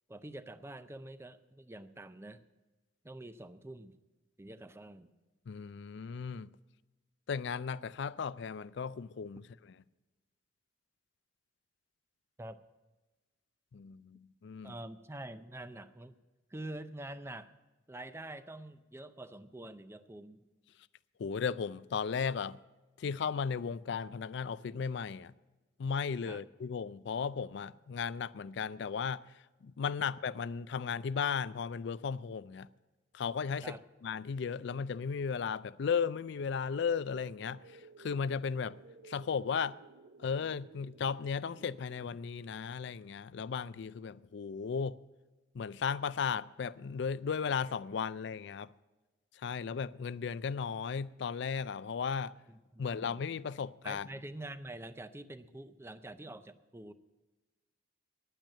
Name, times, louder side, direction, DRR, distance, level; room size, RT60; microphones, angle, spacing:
voice 1, 0.1-2.4 3.0-4.0 4.4-5.1 12.4-12.6 14.6-16.2 16.5-17.5 17.9-20.5 26.2-26.4 33.6-33.8 52.5-53.2 53.8-56.9, right 1 dB, 15° right, 0.5 m, -46 dB
voice 2, 5.5-6.5 7.3-9.5 13.7-14.8 21.2-22.6 23.0-25.3 25.8-29.2 29.6-32.7 33.1-33.8 34.0-37.6 38.0-38.8 39.0-39.8 40.2-45.0 45.5-48.7 49.4-52.3 52.8-54.1, left 6 dB, 65° left, 0.4 m, -35 dB
sound 1, 36.8-42.1, right 3 dB, 75° right, 0.6 m, -57 dB
10.0 x 9.1 x 8.9 m
head